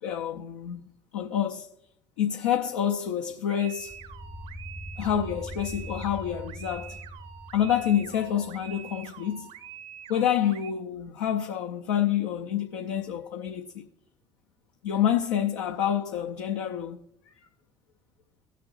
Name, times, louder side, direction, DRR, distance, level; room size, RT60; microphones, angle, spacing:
voice 1, 0.0-0.8 1.1-1.7 2.2-4.0 5.0-7.0 7.5-9.5 10.1-13.8 14.8-17.0, left 10 dB, 75° left, 0.7 m, -28 dB
sound 1, 3.5-10.7, right 10 dB, 65° right, 0.9 m, -46 dB
sound 2, 3.8-9.1, equal, 10° left, 0.7 m, -42 dB
18.5 x 6.7 x 2.5 m
figure-of-eight pair, 55°, 15 cm